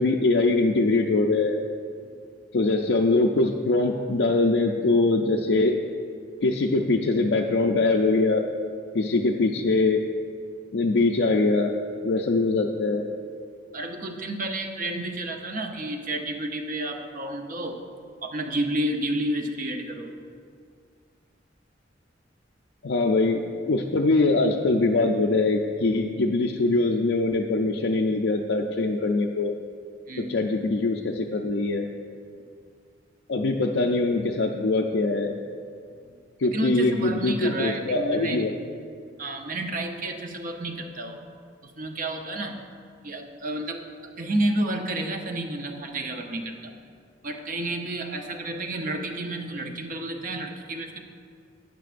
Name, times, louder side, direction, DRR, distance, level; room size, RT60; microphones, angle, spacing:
voice 1, 0.0-1.6 2.5-5.8 6.4-8.5 8.9-10.0 10.7-11.7 12.0-13.0 22.8-29.5 30.3-31.9 33.3-35.3 36.4-38.6, left 3 dB, 75° left, 0 dB, 0.5 m, -23 dB
voice 2, 13.7-17.8 18.2-20.1 30.1-30.3 36.1-36.2 36.5-38.5 39.2-41.2 41.8-42.6 43.0-43.8 44.2-46.8 47.2-51.0, right 1 dB, 50° right, 4 dB, 0.8 m, -30 dB
12.5 x 9.0 x 2.5 m, 2.2 s
head